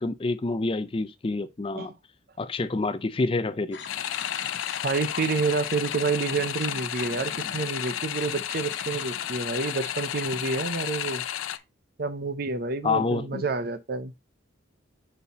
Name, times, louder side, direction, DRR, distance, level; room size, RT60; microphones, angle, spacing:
voice 1, 0.0-1.9 2.4-3.8 12.8-13.4, left 3 dB, 25° left, 0.4 m, -27 dB
sound 1, 3.7-11.6, left 5 dB, 60° left, 0.8 m, -43 dB
sound 2, 3.9-11.6, left 11 dB, 90° left, 0.4 m, -32 dB
voice 2, 4.8-11.2 12.0-14.1, right 4 dB, 50° right, 0.6 m, -29 dB
5.6 x 4.2 x 4.1 m
head